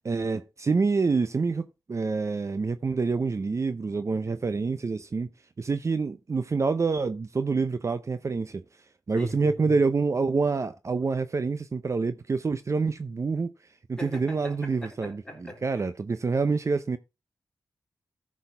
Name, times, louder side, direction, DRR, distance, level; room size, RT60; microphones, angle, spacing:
voice 1, 0.0-5.3 5.6-8.6 9.1-13.5 13.9-15.2 15.6-17.0, right 4 dB, 45° right, 0.6 m, -27 dB
voice 2, 9.2-9.7 14.0-15.8, equal, 10° left, 3.9 m, -41 dB
14.0 x 6.3 x 3.4 m
cardioid pair, 65°, 7 cm